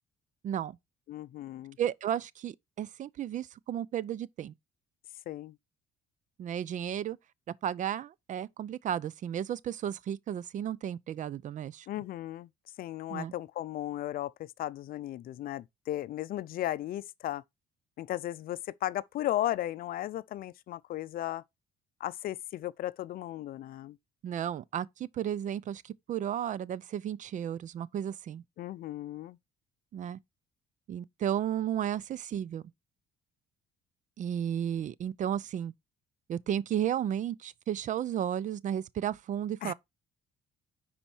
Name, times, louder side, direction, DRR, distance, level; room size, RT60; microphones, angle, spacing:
voice 1, 0.4-0.8 1.8-4.5 6.4-7.2 7.6-11.9 13.1-13.3 24.2-28.4 29.9-30.2 30.9-32.6 34.2-35.7 36.3-39.7, right 10 dB, 50° right, 0.5 m, -33 dB
voice 2, 1.1-1.8 5.3-5.6 11.9-12.5 12.8-17.4 18.0-21.4 22.0-24.0 28.6-29.4 39.6-39.7, left 13 dB, 60° left, 0.5 m, -35 dB
10.0 x 4.3 x 4.3 m
cardioid pair, 110°, 17 cm